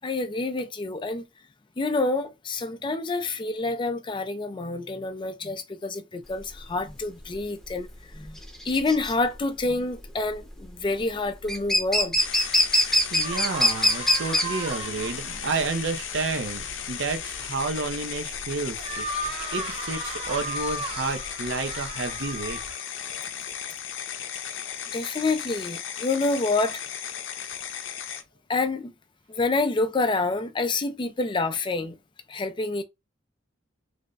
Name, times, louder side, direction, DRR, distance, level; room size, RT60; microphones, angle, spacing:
voice 1, 0.0-1.2 1.8-8.4 8.6-12.2 24.9-26.8 28.5-28.9 29.3-32.0 32.3-32.8, left 3 dB, 25° left, 0.4 m, -27 dB
sound 1, 6.3-22.7, equal, ahead, 0.8 m, -26 dB
sound 2, 12.2-28.2, left 8 dB, 75° left, 0.6 m, -36 dB
voice 2, 13.1-22.6, right 4 dB, 65° right, 0.7 m, -31 dB
sound 3, 13.2-15.1 18.8-23.1, right 1 dB, 30° right, 1.0 m, -35 dB
3.3 x 2.1 x 3.8 m
head